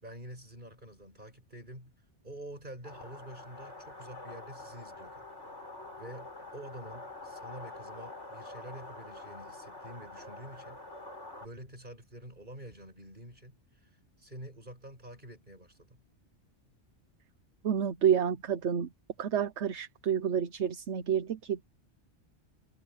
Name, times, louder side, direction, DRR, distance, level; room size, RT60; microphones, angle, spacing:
voice 1, 0.0-1.9 2.2-5.2 6.0-10.8 11.4-13.6 13.8-13.9 14.2-16.0, right 1 dB, 45° right, 7.6 m, -48 dB
sound 1, 2.8-11.5, left 2 dB, 85° left, 7.5 m, -46 dB
voice 2, 17.6-18.9 19.2-21.6, right 8 dB, 75° right, 1.2 m, -29 dB
omnidirectional pair, 1.2 m